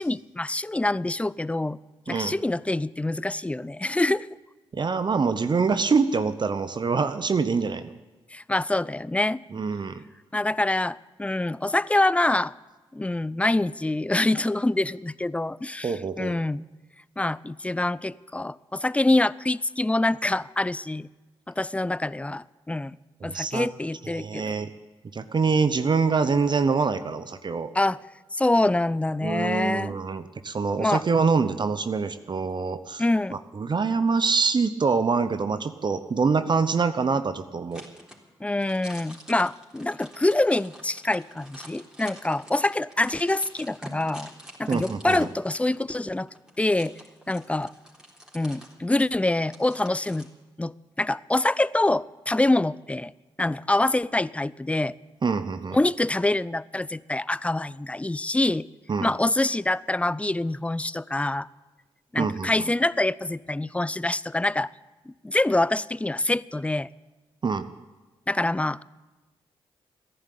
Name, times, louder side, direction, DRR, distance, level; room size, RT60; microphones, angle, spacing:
voice 1, 0.0-1.8 2.1-4.3 8.3-9.4 10.3-12.5 12.9-16.6 17.2-21.1 21.5-23.0 23.2-24.5 27.7-28.0 28.3-30.0 30.8-31.0 33.0-33.4 38.4-44.3 44.6-46.3 46.6-46.9 47.3-47.7 48.3-50.3 50.6-50.7 51.0-53.1 53.4-54.9 55.7-58.7 59.0-61.5 62.1-64.7 65.1-66.9 68.3-68.8, left 2 dB, 10° left, 20 dB, 0.4 m, -25 dB
voice 2, 4.7-7.9 9.5-10.0 15.8-16.4 23.2-23.7 24.1-24.7 25.1-27.7 29.2-33.0 33.3-37.8 44.7-45.3 55.2-55.8 58.9-59.1 62.2-62.7 67.4-67.7, right 5 dB, 45° right, 11 dB, 0.8 m, -25 dB
sound 1, 37.7-50.3, equal, 5° right, 3.8 m, -47 dB
14.5 x 11.0 x 8.4 m, 1.2 s
supercardioid pair, 50°, 11 cm